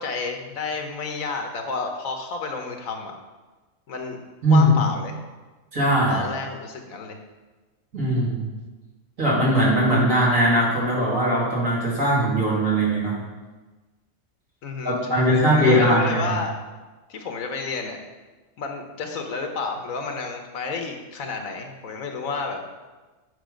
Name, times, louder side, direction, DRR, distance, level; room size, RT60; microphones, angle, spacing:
voice 1, 0.0-3.1 3.9-4.2 4.5-5.1 6.1-7.2 14.6-16.6 17.1-18.0 18.6-22.6, left 4 dB, 85° left, 4 dB, 1.4 m, -30 dB
voice 2, 5.7-6.2 7.9-8.5 9.2-13.2 14.8-16.4, right 1 dB, 75° right, -6 dB, 2.8 m, -20 dB
8.1 x 5.5 x 5.2 m, 1.2 s
omnidirectional pair, 1.4 m